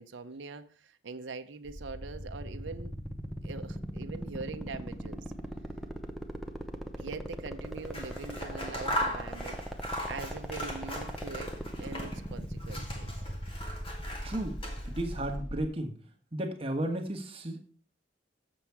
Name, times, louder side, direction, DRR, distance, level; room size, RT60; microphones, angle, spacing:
voice 1, 0.0-2.9 3.4-5.2 7.0-9.6 10.1-13.1, right 4 dB, 80° right, 0.7 m, -43 dB
sound 1, 1.7-15.7, equal, ahead, 0.8 m, -38 dB
Scissors, 7.8-12.3 12.6-15.2, equal, 30° left, 1.8 m, -38 dB
voice 2, 14.2-14.6 14.9-15.9 16.3-17.6, right 1 dB, 30° right, 1.4 m, -33 dB
7.5 x 7.0 x 4.7 m
head